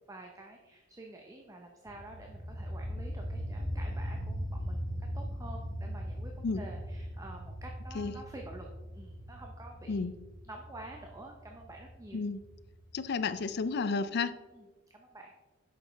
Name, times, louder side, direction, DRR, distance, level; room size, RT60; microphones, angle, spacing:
voice 1, 0.1-4.9 5.1-8.6 8.9-10.0 10.4-12.2 14.5-15.3, right 2 dB, 15° right, 1 dB, 0.6 m, -49 dB
sound 1, 1.9-13.4, equal, 25° left, 1.3 m, -39 dB
voice 2, 12.9-14.3, left 4 dB, 60° left, 13 dB, 0.4 m, -32 dB
8.3 x 6.3 x 3.4 m, 1.2 s
head